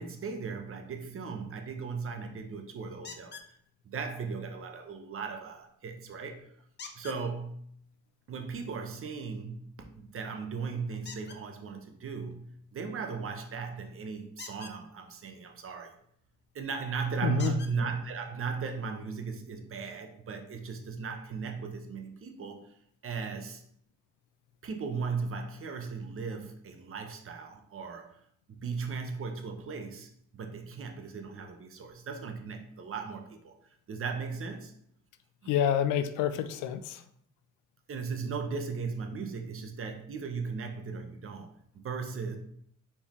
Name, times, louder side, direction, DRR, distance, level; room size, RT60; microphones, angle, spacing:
voice 1, 0.0-3.4 3.8-6.5 6.9-7.6 8.3-12.4 12.7-16.0 16.5-22.7 23.0-23.6 24.6-28.2 28.5-33.5 33.9-34.7 35.4-35.5 37.9-42.4, right 5 dB, 45° right, 0.8 m, -37 dB
sound 1, 3.0-3.5 6.8-7.2 11.0-11.4 14.3-14.8 16.4-16.5 17.4-17.7 18.7-18.8 19.3-19.4, left 5 dB, 35° left, 0.6 m, -45 dB
voice 2, 17.2-17.6 35.5-37.0, left 9 dB, 90° left, 0.5 m, -28 dB
4.3 x 3.5 x 3.0 m
cardioid pair, 90°, 30 cm